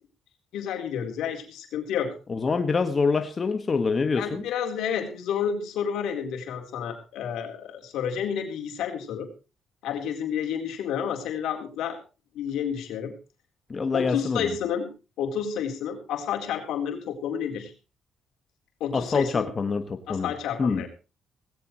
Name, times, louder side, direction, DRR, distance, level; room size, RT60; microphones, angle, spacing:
voice 1, 0.5-2.1 4.1-9.3 9.8-12.0 12.3-13.1 13.9-14.9 15.2-17.7 18.8-19.5 20.1-20.9, left 8 dB, 85° left, 3 dB, 4.0 m, -30 dB
voice 2, 2.3-4.4 13.7-14.5 18.9-20.3 20.6-20.9, left 4 dB, 35° left, 7 dB, 1.7 m, -25 dB
18.5 x 17.0 x 3.1 m, 0.33 s
cardioid pair, 90°, 0 cm